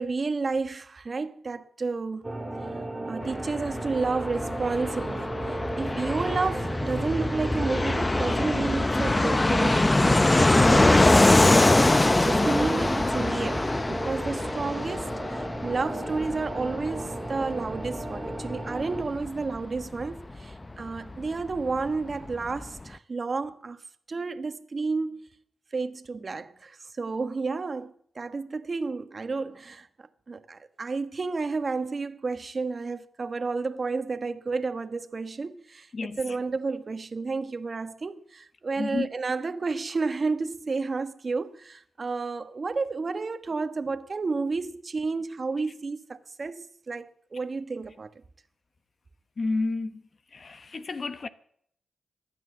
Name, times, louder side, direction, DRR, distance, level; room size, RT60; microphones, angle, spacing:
voice 1, 0.0-2.2 3.1-23.8 24.1-25.3 25.7-29.9 30.3-48.1, right 4 dB, 45° right, 1.2 m, -31 dB
sound 1, 2.2-19.0, right 1 dB, 15° right, 3.0 m, -35 dB
Fixed-wing aircraft airplane, 3.2-21.6 21.9-22.0 22.1-22.9, left 2 dB, 25° left, 0.7 m, -24 dB
voice 2, 38.8-39.1 49.4-50.0 50.3-51.3, left 3 dB, 50° left, 1.1 m, -30 dB
15.5 x 10.5 x 7.2 m
cardioid pair, 55°, 0 cm